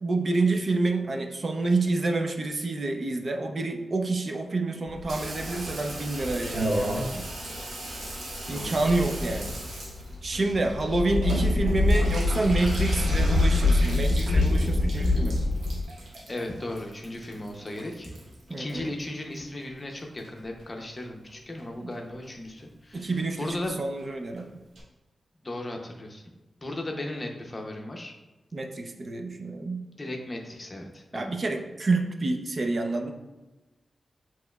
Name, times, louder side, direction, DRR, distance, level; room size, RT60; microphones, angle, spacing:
voice 1, 0.0-7.3 8.5-9.6 10.2-15.4 18.5-19.0 21.7-21.9 22.9-24.5 28.5-29.9 31.1-33.1, right 3 dB, 45° right, 4 dB, 0.5 m, -28 dB
sound 1, 4.9-15.8, left 2 dB, 75° left, 0.4 m, -26 dB
Water tap faucet / Bathtub (filling or washing), 5.1-19.6 19.9-20.6 21.0-21.1 21.3-21.4 21.6-22.0 22.2-22.3 22.6-22.7 22.9-23.0 23.3-23.4 23.6-23.7 24.0-24.1 24.4-24.5 24.8-24.9, right 1 dB, 90° right, 1.0 m, -37 dB
voice 2, 8.5-9.1 10.7-11.0 16.3-18.1 18.6-23.8 25.4-26.2 26.6-28.2 29.9-31.3, left 1 dB, 25° left, 2 dB, 0.6 m, -36 dB
7.5 x 3.0 x 2.3 m, 1.1 s
wide cardioid pair, 130°, 0 cm